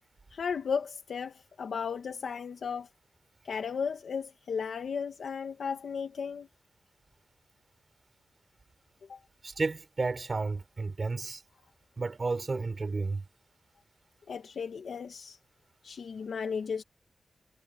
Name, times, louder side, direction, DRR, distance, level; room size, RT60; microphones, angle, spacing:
voice 1, 0.3-2.9 3.4-6.5 9.1-9.2 14.3-15.4 15.8-16.8, left 6 dB, 80° left, 1.6 m, -35 dB
voice 2, 9.4-11.4 12.0-13.2, right 3 dB, 45° right, 4.8 m, -32 dB
wide cardioid pair, 85°, 0 cm